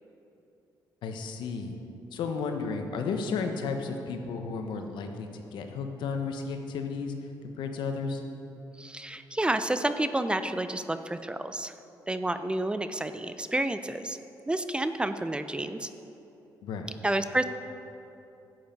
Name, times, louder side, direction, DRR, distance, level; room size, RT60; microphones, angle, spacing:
voice 1, 1.0-1.8 2.1-7.1 7.4-8.2 16.6-16.9, left 4 dB, 85° left, 5 dB, 1.0 m, -33 dB
voice 2, 8.8-11.7 12.1-14.2 14.5-15.9 17.0-17.4, right 1 dB, 15° right, 10 dB, 0.5 m, -30 dB
11.5 x 8.0 x 5.2 m, 2.8 s
cardioid pair, 90°, 8 cm